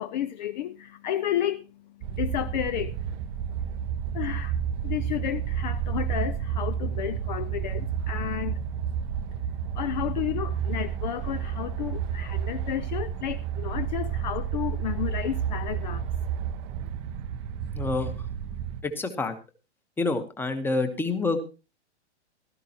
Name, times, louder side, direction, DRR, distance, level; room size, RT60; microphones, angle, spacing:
voice 1, 0.0-1.7 2.2-3.0 4.1-8.7 9.4-16.1, left 11 dB, 40° left, 0.5 m, -32 dB
sound 1, 2.0-18.8, right 8 dB, 25° right, 0.6 m, -31 dB
voice 2, 17.7-18.1 18.8-19.3 20.0-21.4, left 3 dB, 5° left, 1.0 m, -27 dB
16.5 x 12.5 x 2.9 m
hypercardioid pair, 140°, 35 cm